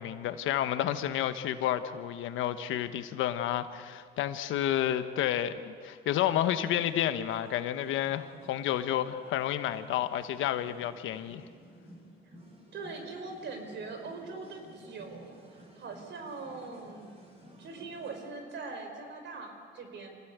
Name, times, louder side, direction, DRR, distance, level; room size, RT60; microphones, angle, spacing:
voice 1, 0.0-11.4, left 11 dB, 90° left, 10 dB, 1.2 m, -30 dB
sound 1, 6.2-18.3, right 1 dB, 30° right, 6.3 m, -55 dB
voice 2, 12.7-15.4 15.8-17.1 17.6-20.2, right 3 dB, 70° right, 5 dB, 4.5 m, -41 dB
26.0 x 18.0 x 8.1 m, 2.1 s
cardioid pair, 90°, 20 cm